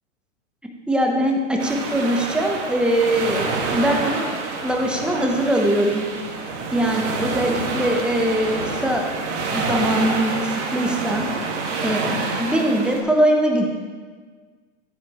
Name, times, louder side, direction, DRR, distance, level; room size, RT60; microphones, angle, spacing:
voice 1, 0.9-6.1 6.7-9.1 9.5-11.3 11.8-13.7, right 1 dB, ahead, 1 dB, 0.8 m, -22 dB
sound 1, 1.6-13.0, right 4 dB, 60° right, 1.8 m, -27 dB
11.5 x 8.3 x 3.0 m, 1.5 s
hypercardioid pair, 130°, 40 cm